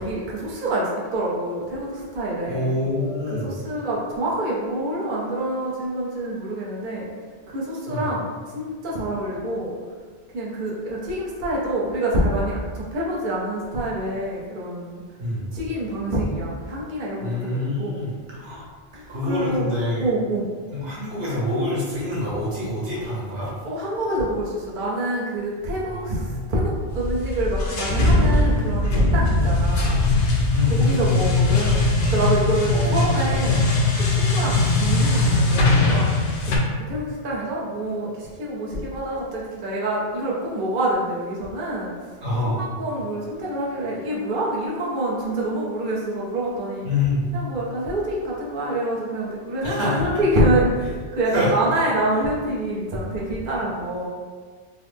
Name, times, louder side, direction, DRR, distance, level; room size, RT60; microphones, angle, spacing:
voice 1, 0.0-2.8 3.3-7.1 7.5-9.7 10.3-15.0 15.5-18.0 18.9-19.7 20.0-20.5 23.6-30.0 30.7-33.6 34.1-36.2 36.5-36.6 36.9-41.9 42.4-46.9 47.3-54.1, right 1 dB, 55° right, -5 dB, 0.8 m, -26 dB
voice 2, 2.4-3.5 7.9-8.1 15.2-15.5 17.2-18.7 19.1-20.1 20.7-23.5 25.9-26.4 28.8-28.9 30.5-31.0 32.7-33.4 42.2-42.7 46.8-47.2 49.6-50.0 51.3-51.5, left 2 dB, 85° right, -7 dB, 1.4 m, -26 dB
sound 1, 26.9-36.6, left 2 dB, 90° left, 0.9 m, -20 dB
3.9 x 2.0 x 3.3 m, 1.5 s
omnidirectional pair, 1.1 m